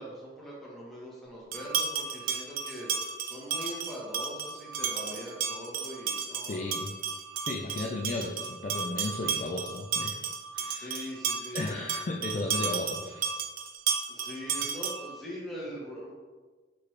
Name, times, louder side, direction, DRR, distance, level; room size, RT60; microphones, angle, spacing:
voice 1, 0.0-2.9 3.2-6.7 10.6-11.7 14.1-16.1, equal, ahead, -7 dB, 1.0 m, -42 dB
sound 1, 1.5-15.2, right 6 dB, 50° right, 0.3 m, -33 dB
voice 2, 6.5-6.9 7.5-11.1 11.5-13.3, left 2 dB, 40° left, 0 dB, 0.3 m, -35 dB
4.6 x 2.5 x 3.2 m, 1.3 s
head